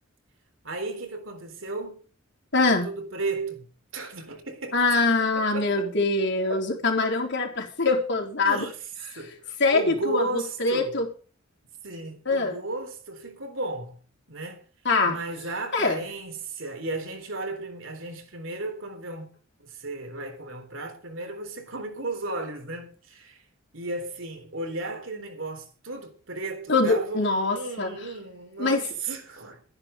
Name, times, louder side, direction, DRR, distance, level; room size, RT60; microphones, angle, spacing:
voice 1, 0.6-2.0 2.7-4.8 5.4-5.9 8.4-8.9 9.2-11.0 11.8-14.0 14.3-14.6 15.1-19.3 19.6-23.4 23.7-29.6, right 2 dB, 65° right, 3.7 m, -34 dB
voice 2, 2.5-2.9 4.7-8.7 9.6-11.1 12.3-12.6 14.8-15.2 15.7-16.0 26.7-27.9 28.6-28.8, left 3 dB, 55° left, 4.1 m, -23 dB
14.5 x 10.5 x 5.2 m
head